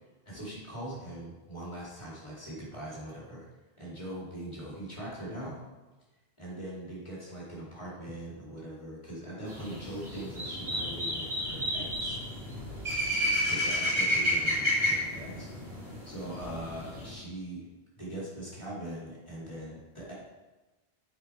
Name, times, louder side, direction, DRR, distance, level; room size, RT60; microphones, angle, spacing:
voice 1, 0.3-3.5 3.8-5.6 6.4-12.2 13.5-15.5 16.0-17.7 18.0-20.1, right 1 dB, 25° left, -6 dB, 2.7 m, -41 dB
sound 1, 9.4-17.1, left 1 dB, 80° right, 2.9 m, -31 dB
8.0 x 5.1 x 4.5 m, 1.1 s
omnidirectional pair, 1.1 m